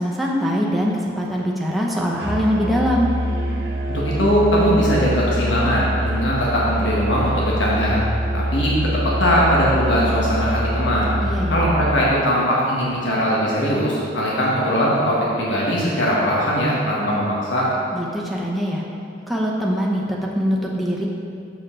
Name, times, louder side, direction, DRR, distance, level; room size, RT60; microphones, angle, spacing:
voice 1, 0.0-3.1 11.2-11.5 17.9-18.8 19.3-21.1, equal, ahead, -4 dB, 0.7 m, -22 dB
Musical instrument, 2.2-12.1, equal, 65° right, 1.4 m, -24 dB
voice 2, 3.9-8.0 8.3-8.7 9.0-11.1 11.5-17.6, equal, 90° left, -5 dB, 1.3 m, -20 dB
7.0 x 6.7 x 3.7 m, 2.6 s
head